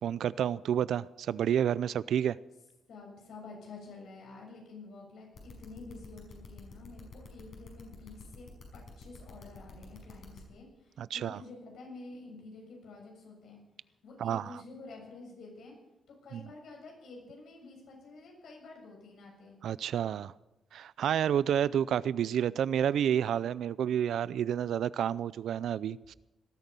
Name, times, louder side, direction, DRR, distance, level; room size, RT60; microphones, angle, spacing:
voice 1, 0.0-2.4 11.0-11.4 14.2-14.6 16.3-16.5 19.6-20.3 20.7-26.1, right 9 dB, 75° right, 0.5 m, -30 dB
voice 2, 2.9-13.6 14.0-15.8 16.1-19.6, left 3 dB, 75° left, 7.2 m, -49 dB
sound 1, 5.3-10.4, left 5 dB, 50° left, 5.7 m, -50 dB
19.0 x 13.0 x 5.4 m
wide cardioid pair, 150°, 0 cm